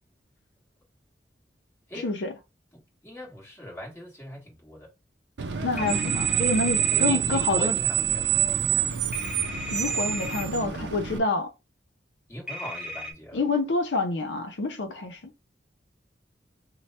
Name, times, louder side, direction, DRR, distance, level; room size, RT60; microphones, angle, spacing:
voice 1, 2.0-2.3 5.6-7.8 9.7-11.5 13.3-15.2, left 3 dB, 90° left, 0.6 m, -27 dB
voice 2, 3.0-4.9 6.9-8.9 12.3-13.4, equal, 15° left, 1.7 m, -40 dB
Screech, 5.4-11.2, right 9 dB, 70° right, 0.5 m, -26 dB
sound 1, 5.8-7.1 9.1-10.4 12.5-13.1, left 1 dB, 5° right, 1.1 m, -36 dB
3.2 x 2.2 x 4.1 m
head